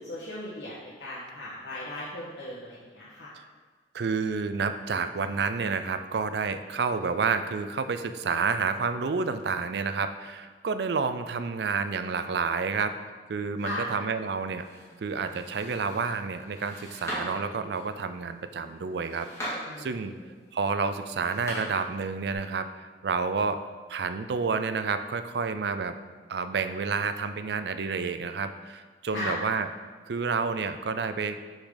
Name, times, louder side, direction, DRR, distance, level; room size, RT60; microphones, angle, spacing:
voice 1, 0.0-3.3 13.6-13.9 19.6-20.3 29.1-29.4, left 1 dB, 80° left, -10 dB, 1.6 m, -37 dB
voice 2, 3.9-13.0 13.3-14.7 15.0-20.1 20.5-23.6 23.9-26.0 26.3-29.7 30.1-31.6, right 5 dB, 65° right, 10 dB, 0.4 m, -29 dB
sound 1, 13.8-22.3, equal, 15° left, 2.1 m, -42 dB
6.4 x 6.1 x 3.9 m, 1.4 s
head